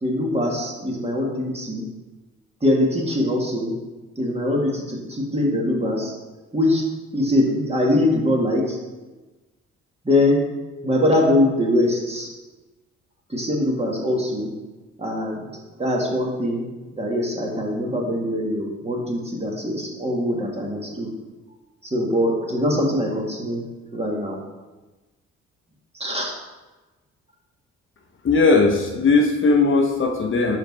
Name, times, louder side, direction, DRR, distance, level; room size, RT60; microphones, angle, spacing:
voice 1, 0.0-1.9 2.6-3.7 4.2-6.1 6.5-6.8 7.1-8.8 10.1-10.4 10.8-12.3 13.3-14.5 15.0-15.4 15.8-16.7 17.0-21.1 21.8-23.6 23.9-24.4 26.0-26.3, left 1 dB, 20° right, -1 dB, 1.8 m, -22 dB
voice 2, 28.2-30.6, left 3 dB, 45° left, 2 dB, 0.9 m, -18 dB
4.9 x 4.8 x 5.5 m, 1.2 s
cardioid pair, 70°, 29 cm